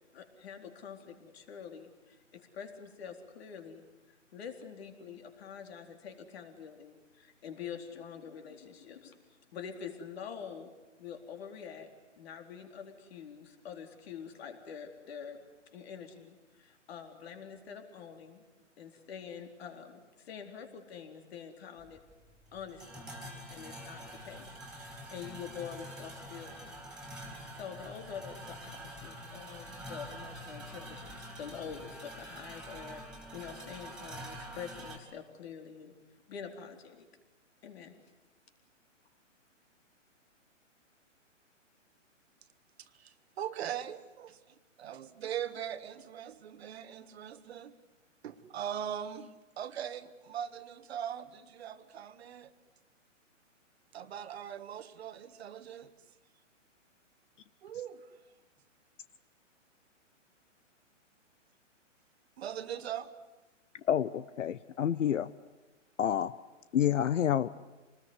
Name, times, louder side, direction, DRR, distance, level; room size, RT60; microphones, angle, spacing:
voice 1, 0.0-10.7 11.0-11.9 12.2-15.4 15.7-18.4 18.8-22.0 22.5-23.2 23.5-26.7 27.2-33.0 33.3-35.9 36.3-37.1 37.6-38.0, left 7 dB, 50° left, 5 dB, 4.0 m, -46 dB
sound 1, 21.8-35.0, right 1 dB, ahead, 3.5 m, -46 dB
voice 2, 43.0-44.4 44.8-47.7 48.2-49.3 49.6-52.5 53.9-55.9 57.6-58.0 62.4-63.1, right 9 dB, 55° right, 11 dB, 1.6 m, -40 dB
voice 3, 63.9-65.3 66.0-66.3 66.7-67.5, left 9 dB, 70° left, 15 dB, 0.9 m, -28 dB
26.5 x 20.0 x 9.8 m, 1.1 s
hypercardioid pair, 145°, 38 cm